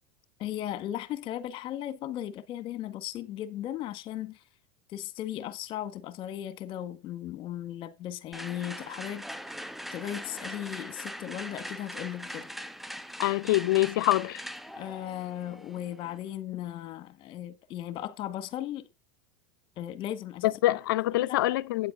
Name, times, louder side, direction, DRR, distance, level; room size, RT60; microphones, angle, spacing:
voice 1, 0.4-4.4 4.9-9.3 9.9-12.5 14.8-18.9 19.8-20.8 21.2-21.4, left 12 dB, 50° left, 1.7 m, -37 dB
sound 1, 8.3-16.3, equal, ahead, 1.1 m, -41 dB
voice 2, 13.2-14.4 20.4-21.9, left 17 dB, 75° left, 0.7 m, -25 dB
9.1 x 7.7 x 5.6 m
hypercardioid pair, 90°, 11 cm